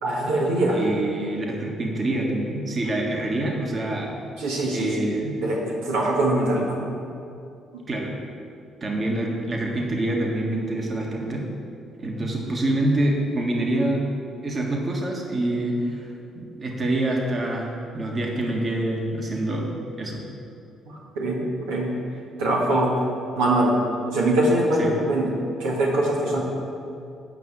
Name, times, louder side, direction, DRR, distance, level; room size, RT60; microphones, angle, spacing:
voice 1, 0.0-0.8 4.4-4.9 5.4-6.8 20.9-22.0 22.4-22.9 23.4-23.7 24.1-25.3 25.6-26.4, right 1 dB, 90° right, -4 dB, 1.8 m, -23 dB
voice 2, 0.7-4.1 4.7-5.3 7.9-8.1 8.8-11.5 12.0-14.0 14.4-17.7 17.9-19.7 20.0-20.2 24.8-25.0, right 1 dB, 40° right, 0 dB, 1.7 m, -26 dB
9.2 x 5.8 x 7.3 m, 2.5 s
supercardioid pair, 55°, 0 cm